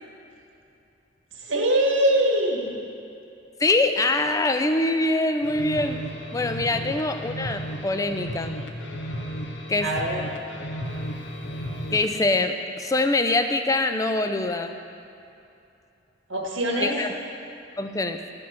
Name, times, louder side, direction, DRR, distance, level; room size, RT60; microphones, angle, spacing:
voice 1, 1.3-2.8 6.7-6.8 9.8-10.2 16.3-16.9, right 1 dB, 80° right, -1 dB, 1.7 m, -23 dB
voice 2, 3.6-6.0 6.3-8.6 9.7-9.9 11.9-14.8 16.8-17.2 17.8-18.2, left 2 dB, 15° left, 7 dB, 0.4 m, -24 dB
sound 1, 5.4-12.2, equal, 65° left, 0.9 m, -34 dB
12.5 x 5.3 x 5.7 m, 2.7 s
head